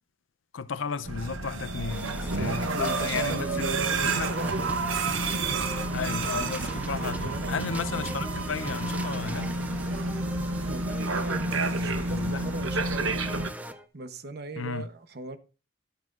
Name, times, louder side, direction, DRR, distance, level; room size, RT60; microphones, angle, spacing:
voice 1, 0.5-3.7 4.0-4.3 5.9-9.5 11.8-12.5 14.6-14.9, left 5 dB, 80° left, 0.6 m, -34 dB
sound 1, 1.0-13.5, right 3 dB, 85° right, 1.0 m, -30 dB
sound 2, 1.9-13.9, right 1 dB, 10° right, 0.5 m, -40 dB
voice 2, 2.3-4.6 6.9-7.5 10.6-13.2 13.9-15.4, right 2 dB, 55° right, 1.0 m, -37 dB
11.5 x 9.2 x 2.5 m
head